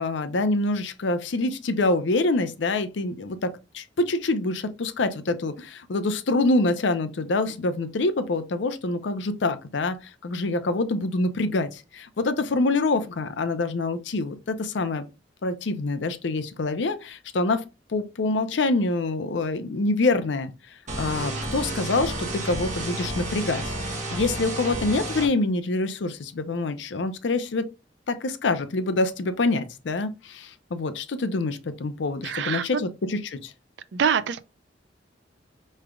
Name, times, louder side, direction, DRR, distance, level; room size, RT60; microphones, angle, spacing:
voice 1, 0.0-10.0 10.2-15.0 15.4-17.6 17.9-20.5 21.0-23.7 24.1-27.7 28.1-33.5, left 2 dB, 75° left, 0.5 m, -26 dB
sound 1, 20.9-25.3, right 1 dB, 40° right, 1.2 m, -31 dB
voice 2, 32.2-32.8 33.9-34.4, right 7 dB, 70° right, 0.4 m, -25 dB
4.9 x 3.2 x 2.3 m
head